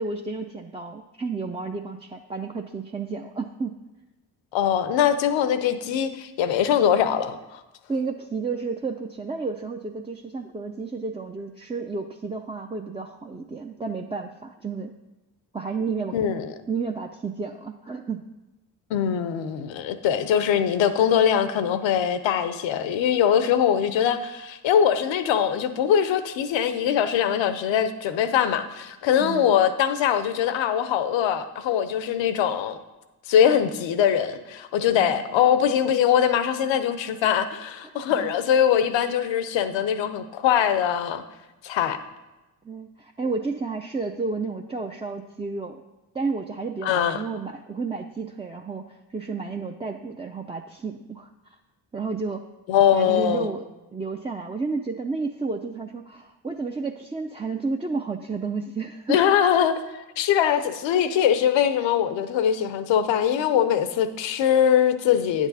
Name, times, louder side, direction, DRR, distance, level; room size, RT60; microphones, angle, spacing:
voice 1, 0.0-3.7 7.9-14.9 15.5-16.2 16.7-18.2 29.2-29.6 35.0-35.3 37.8-38.3 42.6-45.8 46.1-51.6 51.9-52.5 52.9-53.7 53.9-59.2, right 4 dB, 15° right, 2 dB, 0.5 m, -31 dB
voice 2, 4.5-7.6 16.1-16.5 18.9-32.8 33.3-41.2 41.6-42.0 46.8-47.2 52.7-53.5 59.1-65.5, left 9 dB, 75° left, 12 dB, 0.7 m, -22 dB
9.7 x 6.3 x 4.1 m, 1.0 s
hypercardioid pair, 45°, 46 cm